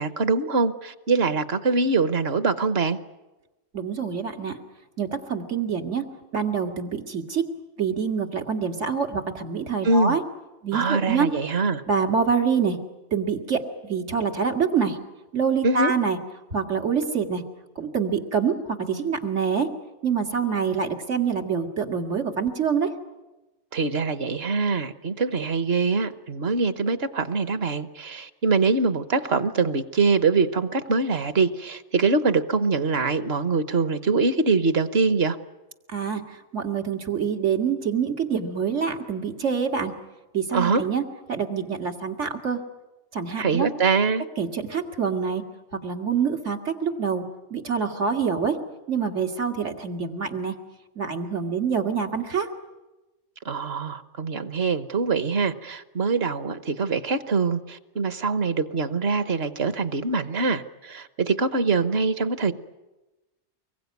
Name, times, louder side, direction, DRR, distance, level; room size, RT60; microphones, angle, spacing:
voice 1, 0.0-3.0 9.8-10.2 10.7-11.8 15.6-15.9 23.7-35.4 40.5-40.8 43.4-44.2 53.4-62.5, right 4 dB, 60° right, 11 dB, 1.3 m, -23 dB
voice 2, 3.7-4.6 5.0-6.0 6.3-7.4 7.8-10.2 10.6-11.3 11.9-12.8 13.1-15.0 15.3-16.2 16.5-17.4 17.8-19.7 20.0-22.9 35.9-36.2 36.5-39.9 40.3-41.0 41.3-42.6 43.1-43.7 44.4-45.4 45.8-47.2 47.5-48.6 48.9-50.5 51.0-52.5, right 6 dB, 85° right, 4 dB, 2.3 m, -26 dB
25.0 x 22.0 x 9.4 m, 1.1 s
omnidirectional pair, 1.2 m